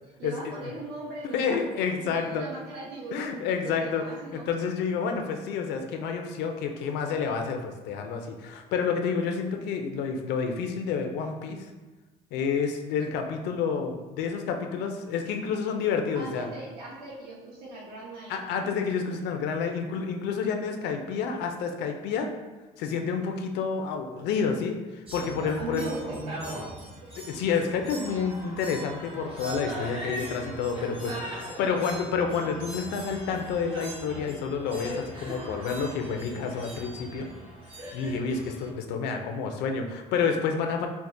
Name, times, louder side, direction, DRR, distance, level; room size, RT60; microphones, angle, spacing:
voice 1, 0.2-3.3 3.6-4.5 16.1-18.4 25.6-27.1 30.8-31.9, right 2 dB, 75° right, -6 dB, 1.1 m, -40 dB
voice 2, 1.3-2.4 3.1-4.0 4.3-11.7 12.3-16.5 18.3-22.3 22.8-25.9 27.3-31.1 31.6-37.3 37.9-40.9, left 5 dB, 85° left, 4 dB, 0.5 m, -29 dB
sound 1, 25.1-38.7, equal, 30° right, 1.0 m, -40 dB
4.5 x 2.1 x 2.6 m, 1.2 s
cardioid pair, 110°, 17 cm